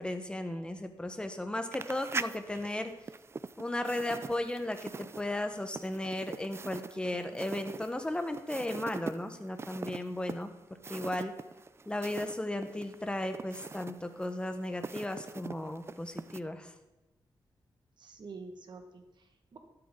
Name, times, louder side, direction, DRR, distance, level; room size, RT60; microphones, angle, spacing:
voice 1, 0.0-2.9 3.6-4.9 5.2-10.5 10.9-11.3 11.9-16.7, left 1 dB, 10° left, 7 dB, 1.2 m, -35 dB
sound 1, 1.7-12.4 12.6-16.4, right 4 dB, 30° right, 0.4 m, -42 dB
voice 2, 6.9-7.4 18.0-19.6, right 4 dB, 60° right, 5 dB, 1.7 m, -48 dB
12.5 x 11.5 x 3.9 m, 1.0 s
wide cardioid pair, 115°, 9 cm